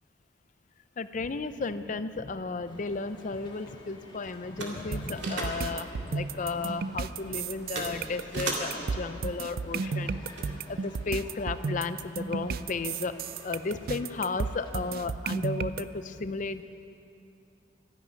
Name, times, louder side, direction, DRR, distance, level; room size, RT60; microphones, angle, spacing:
voice 1, 1.0-10.2 10.7-13.1 13.4-16.6, left 3 dB, 45° left, 12 dB, 0.5 m, -34 dB
sound 1, 2.7-14.9, left 1 dB, 25° left, 1.8 m, -50 dB
sound 2, 2.9-10.9, right 2 dB, 80° right, 2.2 m, -41 dB
sound 3, 4.9-15.8, right 5 dB, 55° right, 0.4 m, -33 dB
12.5 x 11.0 x 9.3 m, 2.6 s
head